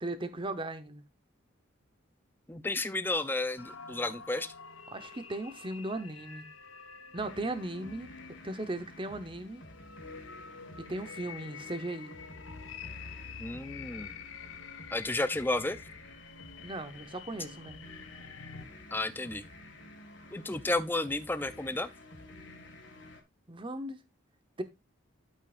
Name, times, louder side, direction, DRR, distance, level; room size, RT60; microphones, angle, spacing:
voice 1, 0.0-1.0 4.9-6.5 7.1-8.1 8.4-9.6 10.8-12.2 16.6-17.8 23.5-24.0 24.6-24.7, right 2 dB, 25° right, 0.9 m, -37 dB
voice 2, 2.5-4.5 13.4-14.1 14.9-15.8 18.9-19.4 20.3-21.9, left 2 dB, 10° left, 0.5 m, -32 dB
sound 1, 3.6-18.6, left 6 dB, 75° left, 0.9 m, -48 dB
sound 2, 7.2-23.2, left 1 dB, 60° left, 1.8 m, -51 dB
12.0 x 5.5 x 2.5 m
head